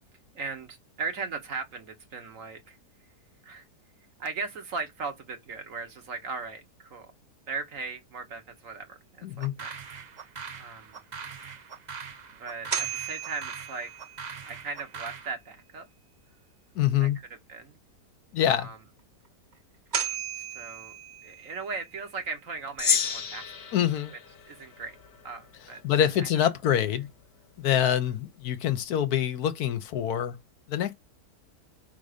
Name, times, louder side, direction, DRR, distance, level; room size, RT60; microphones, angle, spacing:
voice 1, 0.3-2.8 3.4-3.7 4.2-7.1 7.5-9.8 10.6-11.0 12.4-14.0 14.4-15.9 17.0-17.8 18.5-18.8 20.3-20.9 21.2-23.5 24.1-24.2 24.5-25.0 25.2-25.8 26.2-26.3, right 4 dB, 55° right, 1.5 m, -38 dB
voice 2, 9.2-9.5 16.7-17.2 18.3-18.7 23.7-24.1 25.8-27.1 27.6-30.4 30.7-30.9, left 10 dB, 70° left, 1.1 m, -25 dB
sound 1, 9.4-15.3, right 6 dB, 85° right, 0.4 m, -42 dB
sound 2, 12.5-14.6 19.5-19.6 19.9-21.8, right 7 dB, 40° right, 0.7 m, -35 dB
Gong, 22.8-25.4, left 7 dB, 45° left, 1.1 m, -31 dB
5.2 x 3.8 x 5.0 m
omnidirectional pair, 1.8 m